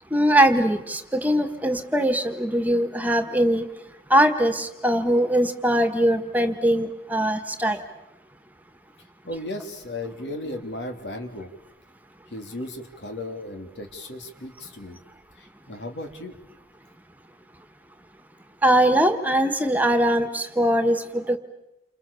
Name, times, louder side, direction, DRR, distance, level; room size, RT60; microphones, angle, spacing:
voice 1, 0.1-3.6 4.1-7.8 18.6-21.4, right 1 dB, 10° right, 8 dB, 1.5 m, -21 dB
voice 2, 9.2-11.5 12.3-15.0 15.4-16.4, left 1 dB, 90° left, 5 dB, 3.4 m, -35 dB
29.5 x 27.5 x 7.1 m, 0.92 s
head